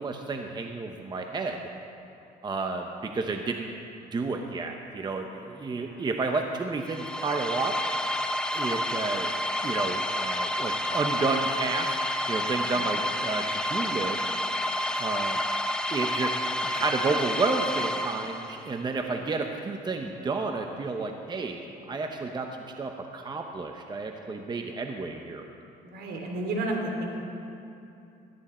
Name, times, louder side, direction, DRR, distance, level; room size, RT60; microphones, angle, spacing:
voice 1, 0.0-1.6 2.4-3.7 4.1-7.8 8.5-9.3 9.6-12.0 12.3-14.2 15.0-15.4 15.9-16.3 16.7-25.4, right 3 dB, 25° right, 4 dB, 0.9 m, -31 dB
voice 2, 5.7-6.0 12.6-12.9 25.8-27.2, right 1 dB, 75° right, 1 dB, 3.1 m, -32 dB
sound 1, 6.8-18.7, left 1 dB, 5° left, 0.9 m, -29 dB
17.5 x 13.5 x 4.4 m, 2.8 s
cardioid pair, 110°, 17 cm